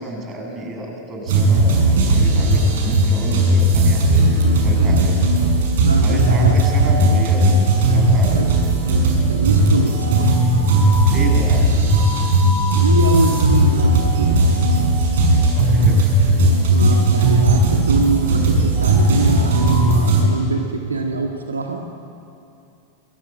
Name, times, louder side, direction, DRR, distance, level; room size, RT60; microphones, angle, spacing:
voice 1, 0.0-5.2 6.0-7.5 7.9-8.5 11.0-12.2 15.5-16.3, right 1 dB, 25° right, 1 dB, 7.6 m, -30 dB
sound 1, 1.3-20.2, right 1 dB, 60° right, 6.4 m, -16 dB
voice 2, 5.8-6.6 8.3-10.3 11.9-12.0 12.3-14.7 16.7-21.8, right 4 dB, 75° right, 3 dB, 1.9 m, -24 dB
30.0 x 23.0 x 8.8 m, 2.7 s
figure-of-eight pair, 90°, 0 cm